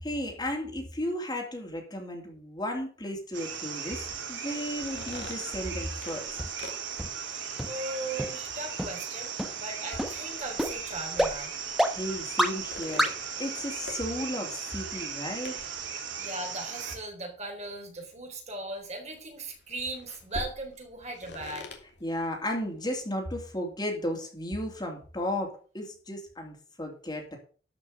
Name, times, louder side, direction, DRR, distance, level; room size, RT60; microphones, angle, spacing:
voice 1, 0.0-6.2 11.9-13.1 13.4-15.6 22.0-27.4, left 1 dB, 25° left, 1 dB, 3.0 m, -34 dB
sound 1, 3.3-17.0, right 7 dB, 80° right, 3.0 m, -37 dB
sound 2, 4.7-23.3, left 2 dB, 65° left, 2.7 m, -48 dB
sound 3, 6.4-6.5 7.0-7.1 7.6-7.7 8.2-8.3 8.8-8.9 9.4-9.5 10.0-10.1 10.6-10.7 11.2-11.3 11.8-11.9 12.4-12.5 13.0-13.1, equal, ahead, 1.2 m, -25 dB
voice 2, 7.3-11.5 16.2-21.7, right 2 dB, 40° right, 1 dB, 3.9 m, -38 dB
13.0 x 6.1 x 6.6 m, 0.40 s
head